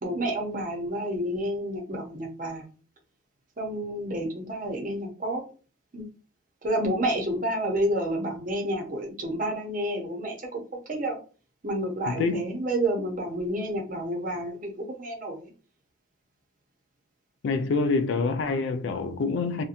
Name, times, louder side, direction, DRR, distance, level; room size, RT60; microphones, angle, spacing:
voice 1, 0.0-2.7 3.6-5.4 5.9-6.0 6.6-11.2 11.6-15.5, right 1 dB, 40° right, 0.7 m, -30 dB
voice 2, 12.1-12.4 17.4-19.6, left 3 dB, 65° left, 0.3 m, -26 dB
2.7 x 2.2 x 2.5 m
head